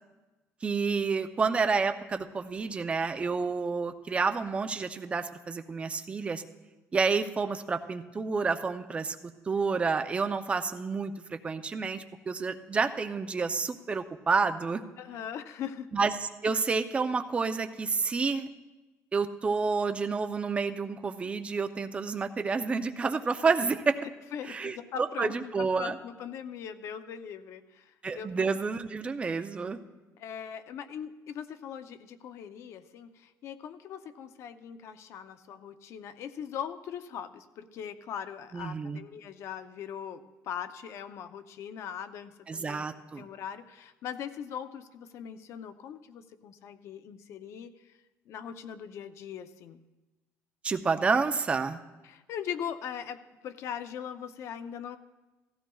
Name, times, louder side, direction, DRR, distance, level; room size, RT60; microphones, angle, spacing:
voice 1, 0.6-6.4 6.9-9.2 9.5-14.8 15.9-18.5 19.1-24.0 24.5-26.0 28.0-29.8 38.5-39.0 42.5-43.2 50.6-51.8, right 4 dB, 20° right, 8 dB, 0.6 m, -29 dB
voice 2, 15.0-15.9 24.0-28.3 30.2-42.9 43.2-47.7 48.3-49.8 52.0-55.0, left 8 dB, 60° left, 11 dB, 0.6 m, -40 dB
16.5 x 15.0 x 2.3 m, 1.1 s
cardioid pair, 140°, 5 cm